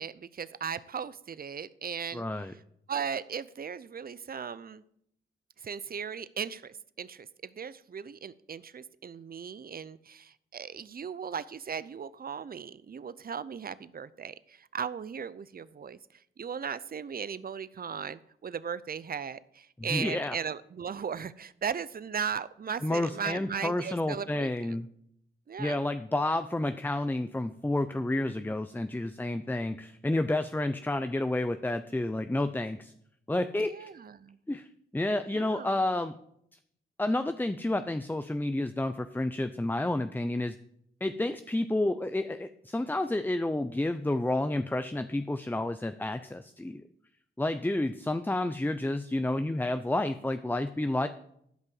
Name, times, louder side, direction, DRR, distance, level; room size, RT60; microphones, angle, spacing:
voice 1, 0.0-2.2 2.9-4.8 5.6-16.0 16.4-24.8 25.5-25.8 33.6-34.4 35.3-35.8, right 7 dB, 45° right, 17 dB, 0.6 m, -37 dB
voice 2, 2.1-2.5 19.8-20.4 22.8-24.9 25.6-32.9 33.3-33.9 34.5-34.7 34.9-36.1 37.0-40.5 41.0-46.8 47.4-51.1, left 1 dB, 10° left, 10 dB, 0.6 m, -30 dB
12.0 x 5.4 x 7.1 m, 0.71 s
cardioid pair, 55°, 21 cm